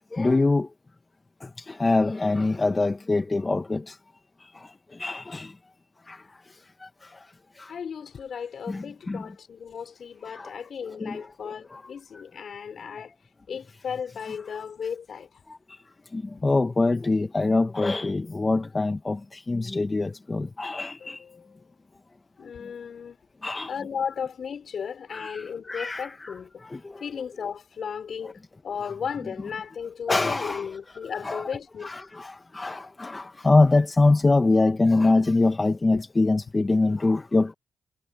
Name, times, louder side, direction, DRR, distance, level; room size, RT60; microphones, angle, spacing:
voice 1, 0.1-0.7 1.4-4.0 4.4-5.6 6.1-7.7 8.7-9.3 10.2-10.6 11.0-12.2 15.5-15.8 16.1-21.2 23.4-23.7 25.1-27.0 28.2-28.3 30.1-30.7 31.2-31.5 31.8-37.5, left 3 dB, 25° left, 1.2 m, -25 dB
voice 2, 7.7-13.1 13.5-15.3 21.0-21.5 22.4-23.2 23.7-26.5 27.0-31.9, left 7 dB, 65° left, 5.9 m, -35 dB
cardioid pair, 70°, 0 cm